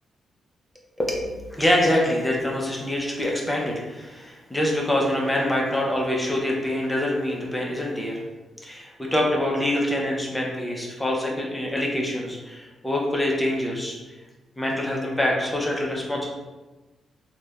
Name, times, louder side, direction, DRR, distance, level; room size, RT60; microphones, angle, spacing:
voice 1, 1.0-8.2 8.6-14.0 14.6-16.3, left 1 dB, 5° left, -2 dB, 0.4 m, -25 dB
2.8 x 2.0 x 2.2 m, 1.2 s
wide cardioid pair, 165°, 0 cm